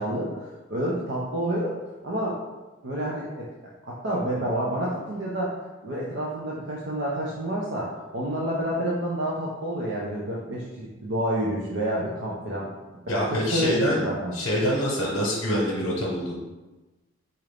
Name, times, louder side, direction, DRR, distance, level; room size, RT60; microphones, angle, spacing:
voice 1, 0.0-1.7 2.0-2.3 2.8-3.5 3.9-5.5 5.8-12.7 13.3-14.3, right 1 dB, 60° right, -5 dB, 0.5 m, -28 dB
voice 2, 13.1-16.3, equal, 85° left, -4 dB, 0.8 m, -25 dB
4.2 x 2.4 x 3.3 m, 1.1 s
head